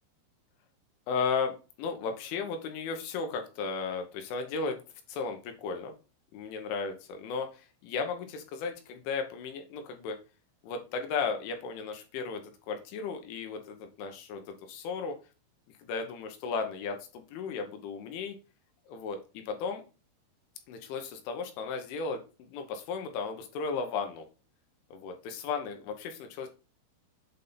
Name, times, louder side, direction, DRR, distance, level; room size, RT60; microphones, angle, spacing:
voice 1, 1.1-4.8 5.1-5.9 6.3-10.2 10.6-15.2 15.8-18.4 18.9-19.8 20.7-24.3 24.9-26.5, left 5 dB, 80° left, 5 dB, 3.3 m, -35 dB
8.0 x 3.6 x 3.9 m, 0.32 s
omnidirectional pair, 5.7 m